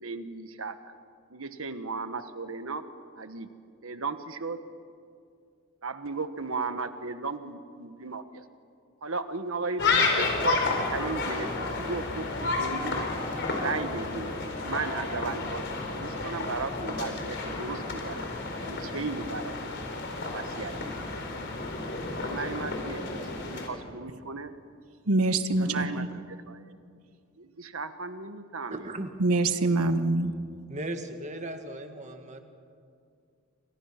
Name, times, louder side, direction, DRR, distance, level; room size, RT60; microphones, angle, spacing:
voice 1, 0.0-0.9 1.3-2.8 3.1-3.5 3.8-4.6 5.8-8.4 9.0-11.5 11.8-13.0 13.5-14.3 14.6-18.2 18.6-19.8 20.2-21.1 22.2-24.5 25.6-26.7 27.4-28.9, right 4 dB, 70° right, 1.4 m, -36 dB
sound 1, 9.8-23.7, left 3 dB, 55° left, 4.0 m, -31 dB
voice 2, 25.1-26.1 29.2-30.3, right 2 dB, 90° right, 1.4 m, -25 dB
voice 3, 28.7-29.1 30.7-32.4, right 1 dB, 35° right, 1.9 m, -37 dB
28.5 x 26.0 x 5.9 m
head